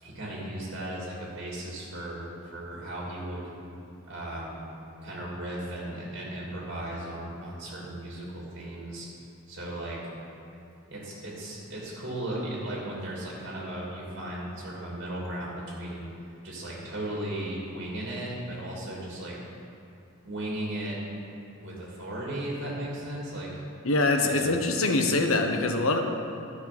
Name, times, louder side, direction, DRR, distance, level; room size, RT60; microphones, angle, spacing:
voice 1, 0.0-3.5 4.1-4.8 5.0-9.1 9.5-10.0 10.9-16.1 16.4-19.4 20.2-21.0 21.6-23.5 24.2-24.5, right 1 dB, 55° right, -4 dB, 2.7 m, -36 dB
voice 2, 23.8-26.0, left 2 dB, 80° left, 4 dB, 1.0 m, -24 dB
12.0 x 6.5 x 6.0 m, 2.6 s
head